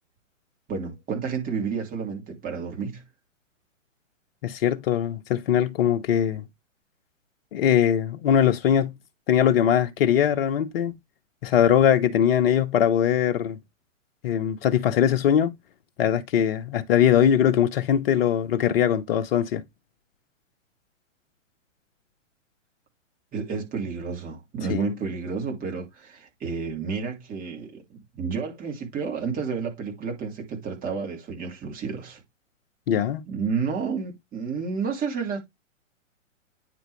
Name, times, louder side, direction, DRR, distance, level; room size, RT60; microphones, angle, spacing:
voice 1, 0.7-3.0 23.3-32.2 33.3-35.4, right 5 dB, 20° right, 2.7 m, -31 dB
voice 2, 4.4-6.4 7.5-9.0 9.3-10.9 11.4-13.6 14.2-15.5 16.0-19.6 24.7-24.9 32.9-33.2, left 9 dB, 45° left, 1.2 m, -21 dB
9.4 x 4.9 x 3.2 m
figure-of-eight pair, 120°, 39 cm